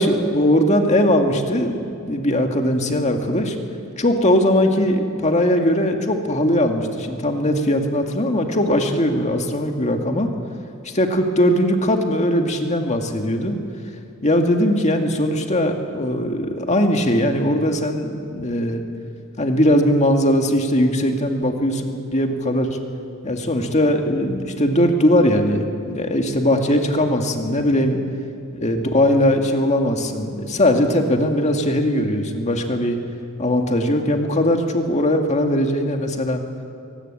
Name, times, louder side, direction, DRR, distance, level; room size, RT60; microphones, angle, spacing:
voice 1, 0.0-3.6 4.0-10.3 10.8-13.6 14.2-18.8 19.4-22.8 23.2-28.0 28.5-33.0 33.4-36.4, left 1 dB, 30° left, 4 dB, 2.0 m, -20 dB
23.5 x 18.5 x 8.7 m, 2.4 s
head